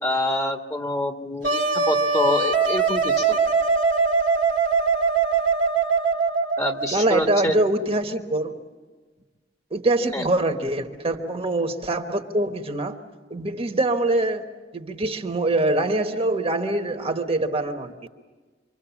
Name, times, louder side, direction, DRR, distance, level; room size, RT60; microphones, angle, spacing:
voice 1, 0.0-3.4 6.6-7.6 10.1-10.3, left 1 dB, 15° left, 4 dB, 1.4 m, -26 dB
Wind instrument woodwind instrument, 1.4-6.9, right 4 dB, 70° right, 1.6 m, -21 dB
voice 2, 6.9-8.5 9.7-13.0 13.3-17.9, right 2 dB, 35° right, 5 dB, 1.3 m, -24 dB
27.0 x 23.5 x 7.2 m, 1.3 s
head